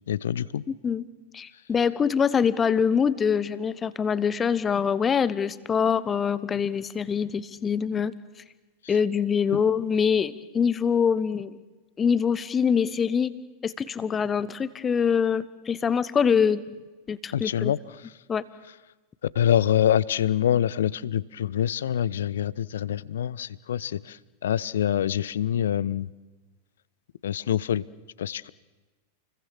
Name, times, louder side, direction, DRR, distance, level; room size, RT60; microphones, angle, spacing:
voice 1, 0.1-0.6 9.5-9.6 17.3-17.8 19.3-26.1 27.2-27.8 28.2-28.5, left 10 dB, 60° left, 21 dB, 0.7 m, -25 dB
voice 2, 1.3-8.1 8.9-11.6 12.0-13.3 13.6-16.6 17.1-17.7 18.3-18.4, left 7 dB, 20° left, 16 dB, 1.1 m, -24 dB
29.0 x 21.5 x 7.2 m, 1.2 s
figure-of-eight pair, 90°, 0 cm